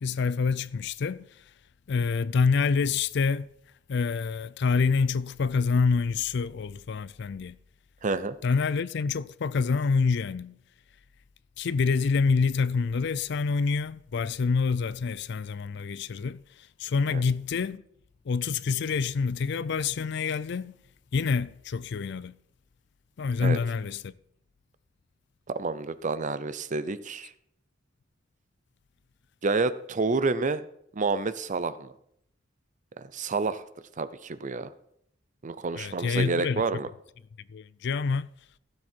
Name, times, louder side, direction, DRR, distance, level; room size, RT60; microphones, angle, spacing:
voice 1, 0.0-1.3 1.9-3.5 3.9-7.6 8.4-10.6 11.6-16.4 16.8-17.8 18.3-20.7 21.1-22.4 23.2-24.1 35.8-36.6 37.5-38.3, left 5 dB, 65° left, 0.4 m, -27 dB
voice 2, 8.0-8.4 17.1-17.2 23.4-23.6 25.5-27.3 29.4-30.6 30.9-31.9 33.0-33.6 34.0-34.7 35.4-36.9, right 3 dB, 40° right, 0.6 m, -29 dB
15.5 x 7.5 x 4.5 m
head